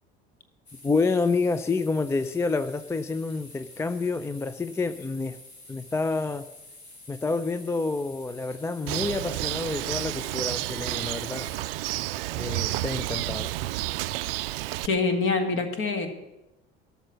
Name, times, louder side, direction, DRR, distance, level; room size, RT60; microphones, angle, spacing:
sound 1, 0.7-11.6, left 2 dB, 85° left, 1.8 m, -49 dB
voice 1, 0.8-5.4 5.7-6.5 7.1-11.5 12.4-13.5, left 3 dB, 10° left, 12 dB, 0.4 m, -28 dB
Bird, 8.9-14.9, right 17 dB, 65° right, 0.5 m, -30 dB
voice 2, 14.8-16.1, left 4 dB, 45° left, 5 dB, 2.1 m, -25 dB
13.0 x 6.9 x 7.7 m, 0.96 s
figure-of-eight pair, 65°, 31 cm